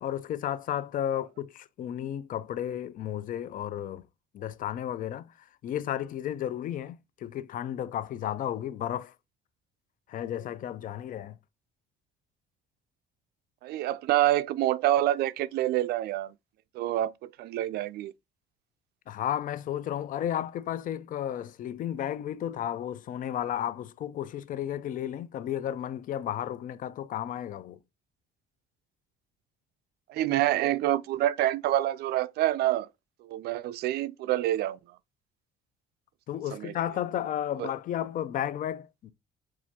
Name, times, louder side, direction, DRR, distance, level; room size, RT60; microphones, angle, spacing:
voice 1, 0.0-4.0 4.3-5.3 5.6-9.1 10.1-11.4 19.1-27.8 36.3-39.1, left 11 dB, 55° left, 0.5 m, -33 dB
voice 2, 13.6-16.3 16.7-18.1 30.1-32.9 33.2-34.8 36.5-36.7 37.6-37.7, right 13 dB, 70° right, 0.4 m, -27 dB
7.3 x 2.5 x 2.8 m
cardioid pair, 110°, 17 cm